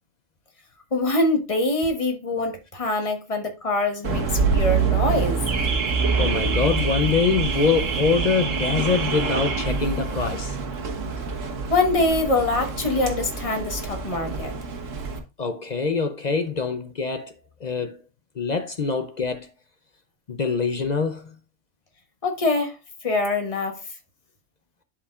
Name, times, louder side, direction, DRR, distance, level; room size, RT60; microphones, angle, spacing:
voice 1, 0.9-5.4 11.7-14.5 22.2-22.8 23.0-23.8, left 2 dB, 30° left, 1.4 m, -24 dB
Car / Alarm, 4.0-15.2, right 5 dB, 85° right, 1.6 m, -26 dB
voice 2, 6.2-10.6 15.4-18.0 18.3-19.5 20.3-21.4, left 5 dB, 45° left, 0.6 m, -24 dB
11.5 x 4.9 x 2.4 m
omnidirectional pair, 1.3 m